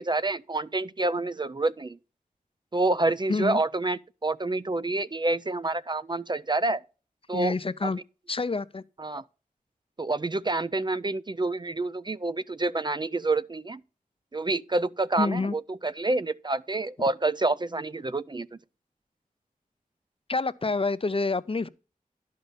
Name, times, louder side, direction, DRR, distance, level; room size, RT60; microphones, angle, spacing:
voice 1, 0.0-2.0 2.7-6.8 7.3-7.6 9.0-9.2 10.0-13.8 14.3-18.5, right 2 dB, 30° right, 0.4 m, -28 dB
voice 2, 3.3-3.6 7.3-8.0 8.3-8.8 15.2-15.5 20.3-21.7, left 3 dB, 40° left, 0.5 m, -27 dB
11.0 x 5.6 x 5.2 m
wide cardioid pair, 55°, 15 cm